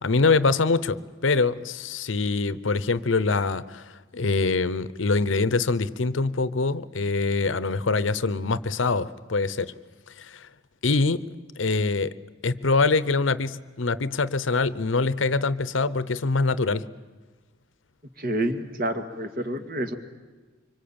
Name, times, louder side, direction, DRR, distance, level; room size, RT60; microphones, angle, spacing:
voice 1, 0.0-3.9 4.1-9.7 10.2-10.5 10.8-11.2 11.6-12.1 12.4-16.9, left 3 dB, 75° left, 16 dB, 0.8 m, -24 dB
voice 2, 18.2-19.9, right 1 dB, 50° right, 7 dB, 2.1 m, -28 dB
25.0 x 24.5 x 8.8 m, 1.3 s
head